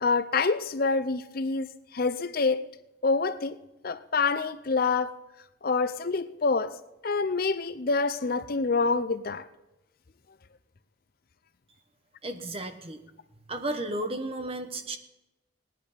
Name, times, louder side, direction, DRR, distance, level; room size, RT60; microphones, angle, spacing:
voice 1, 0.0-2.6 3.0-3.6 3.8-5.1 5.6-6.7 7.0-9.4, left 4 dB, 50° left, 13 dB, 0.6 m, -26 dB
voice 2, 12.2-13.0 13.5-15.0, right 1 dB, 30° right, 8 dB, 1.2 m, -33 dB
17.5 x 11.0 x 5.2 m, 0.96 s
head